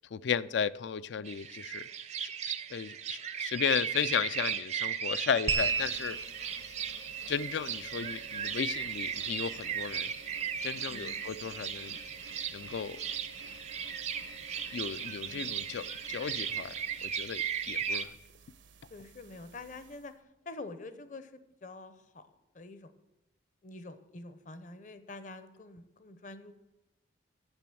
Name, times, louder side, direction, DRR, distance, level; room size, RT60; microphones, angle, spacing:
voice 1, 0.1-1.8 2.2-6.2 7.3-10.1 10.6-12.0 12.5-13.0 14.7-16.7 17.0-18.1, left 7 dB, 70° left, 17 dB, 0.4 m, -34 dB
sound 1, 1.3-18.0, right 8 dB, 35° right, 0.5 m, -37 dB
sound 2, 5.5-20.1, right 4 dB, 80° right, 0.8 m, -41 dB
voice 2, 10.9-11.3 15.2-15.5 18.9-20.1 20.5-22.3 22.5-22.9 23.6-26.5, left 2 dB, 40° left, 12 dB, 0.7 m, -46 dB
8.9 x 6.9 x 7.6 m, 0.97 s
head